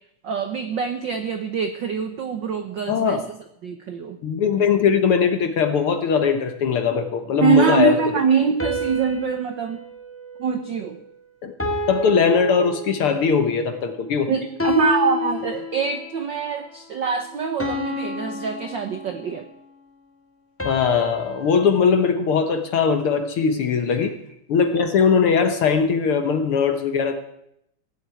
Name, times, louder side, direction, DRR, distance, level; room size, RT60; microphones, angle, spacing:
voice 1, 0.2-3.2 3.6-4.2 7.4-9.8 10.4-11.0 14.3-19.4 24.0-24.1, right 6 dB, 85° right, 8 dB, 1.0 m, -23 dB
voice 2, 2.9-3.2 4.2-8.0 11.4-11.5 11.9-14.3 20.6-24.1 24.5-27.1, left 6 dB, 60° left, 8 dB, 1.5 m, -20 dB
sound 1, 8.6-11.1 11.6-13.3 14.6-16.1 17.6-19.5 20.6-23.0, left 2 dB, 5° left, 1.1 m, -30 dB
16.5 x 8.1 x 9.0 m, 0.78 s
omnidirectional pair, 3.4 m